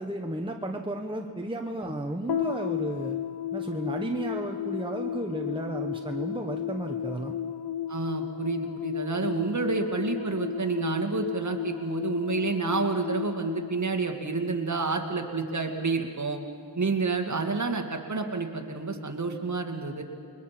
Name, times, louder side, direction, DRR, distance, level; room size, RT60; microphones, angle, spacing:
voice 1, 0.0-3.2 3.5-7.3, right 1 dB, 10° right, 2 dB, 1.1 m, -33 dB
sound 1, 2.3-14.8, left 10 dB, 75° left, 0.7 m, -34 dB
voice 2, 7.9-16.4 16.8-20.0, right 4 dB, 45° right, 3 dB, 2.1 m, -29 dB
29.0 x 22.0 x 5.9 m, 2.3 s
wide cardioid pair, 100°, 41 cm